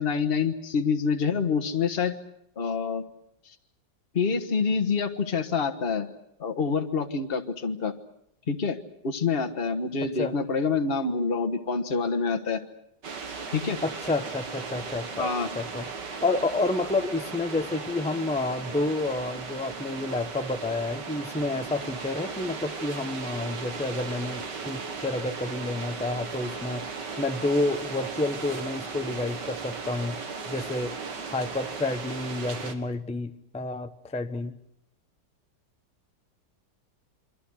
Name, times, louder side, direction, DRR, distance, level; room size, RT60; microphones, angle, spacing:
voice 1, 0.0-2.2 2.6-3.0 4.1-6.1 6.4-7.9 8.5-8.8 9.0-12.6 13.5-13.8 15.2-15.5, left 5 dB, 35° left, 6 dB, 1.6 m, -26 dB
voice 2, 10.0-10.3 13.8-26.8 27.2-30.2 30.5-31.0 31.3-34.5, left 2 dB, 5° left, 7 dB, 0.8 m, -29 dB
sound 1, 13.0-32.8, right 5 dB, 70° right, 2.5 m, -37 dB
28.0 x 24.0 x 6.4 m, 0.74 s
omnidirectional pair, 2.0 m